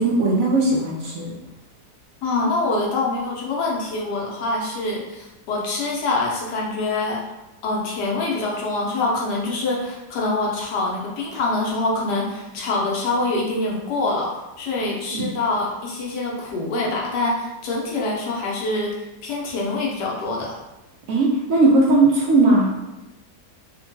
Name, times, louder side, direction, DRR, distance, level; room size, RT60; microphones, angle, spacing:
voice 1, 0.0-1.3 15.1-15.3 21.1-22.7, right 2 dB, 65° right, -3 dB, 0.9 m, -18 dB
voice 2, 2.2-7.2 7.6-20.6, left 2 dB, 85° left, -2 dB, 1.3 m, -25 dB
3.6 x 2.2 x 2.7 m, 1.0 s
omnidirectional pair, 1.8 m